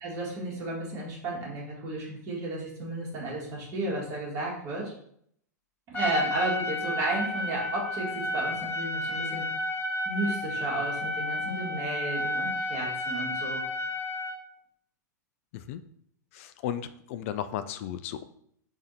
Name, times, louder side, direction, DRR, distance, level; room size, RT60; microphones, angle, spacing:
voice 1, 0.0-4.9 5.9-9.5 10.1-13.6, right 2 dB, 35° right, -4 dB, 1.8 m, -33 dB
Trumpet, 5.9-14.4, left 1 dB, 20° left, 1.2 m, -32 dB
voice 2, 16.3-18.2, left 10 dB, 45° left, 11 dB, 0.4 m, -35 dB
3.6 x 3.4 x 4.0 m, 0.67 s
figure-of-eight pair, 100°, 10 cm